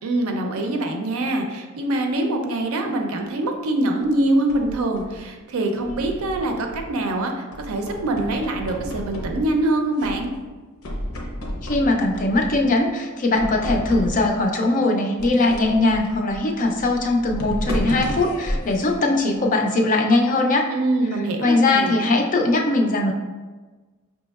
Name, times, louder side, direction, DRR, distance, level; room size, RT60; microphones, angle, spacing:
voice 1, 0.0-10.3 20.7-22.0, right 2 dB, 85° right, 4 dB, 0.5 m, -24 dB
sound 1, 4.0-5.2 5.8-7.1 7.5-9.7 10.0-10.5 10.8-12.8 13.3-14.4 15.2-19.7, equal, 80° left, 0.7 m, -32 dB
voice 2, 11.6-20.7 21.4-23.1, left 2 dB, 40° left, 2 dB, 0.4 m, -20 dB
5.2 x 2.9 x 2.3 m, 1.3 s
head